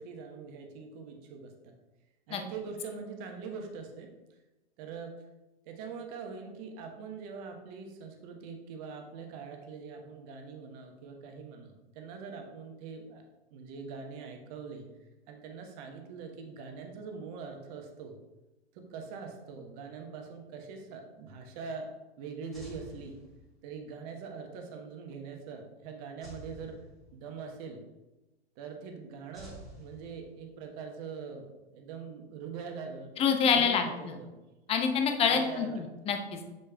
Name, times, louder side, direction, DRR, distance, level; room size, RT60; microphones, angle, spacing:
voice 1, 0.0-1.7 2.3-4.1 4.8-5.3 5.6-13.2 13.5-14.9 15.3-18.2 18.7-21.9 22.2-23.2 23.6-26.8 27.1-27.8 28.6-33.1 33.4-34.4 35.2-35.8, right 5 dB, 40° right, 3 dB, 1.1 m, -43 dB
sound 1, 22.5-23.8 26.2-27.5 29.3-30.6, equal, ahead, 2.0 m, -50 dB
voice 2, 33.2-34.2 34.7-36.5, left 6 dB, 20° left, 5 dB, 0.7 m, -27 dB
6.9 x 6.5 x 2.3 m, 1.1 s
figure-of-eight pair, 100°, 32 cm